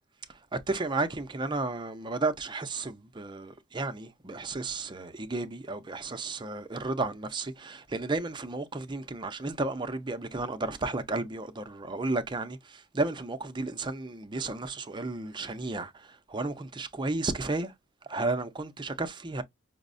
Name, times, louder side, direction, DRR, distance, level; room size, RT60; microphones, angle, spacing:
voice 1, 0.3-17.7 18.0-19.4, right 3 dB, 25° right, 0.5 m, -33 dB
5.7 x 2.0 x 2.5 m
head